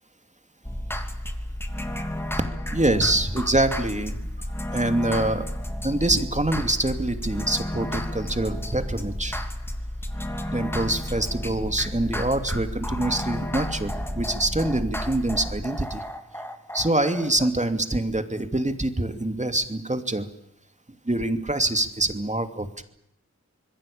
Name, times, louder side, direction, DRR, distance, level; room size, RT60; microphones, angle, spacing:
sound 1, 0.6-17.5, left 1 dB, 10° left, 2.9 m, -32 dB
voice 1, 2.7-4.3 4.7-5.5 5.8-9.4 10.5-16.0 16.7-20.3 21.0-22.8, right 1 dB, 25° right, 8 dB, 2.8 m, -25 dB
26.5 x 22.0 x 8.7 m, 0.77 s
wide cardioid pair, 75°, 29 cm